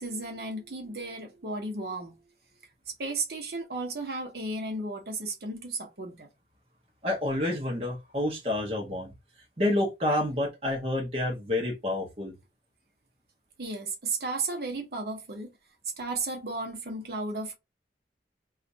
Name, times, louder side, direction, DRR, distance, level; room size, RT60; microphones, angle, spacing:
voice 1, 0.0-2.2 2.9-6.3 13.6-15.5 16.0-17.5, right 3 dB, 65° right, 0.8 m, -34 dB
voice 2, 7.0-9.1 9.6-12.3, left 1 dB, 35° right, 0.8 m, -28 dB
2.5 x 2.4 x 4.0 m
head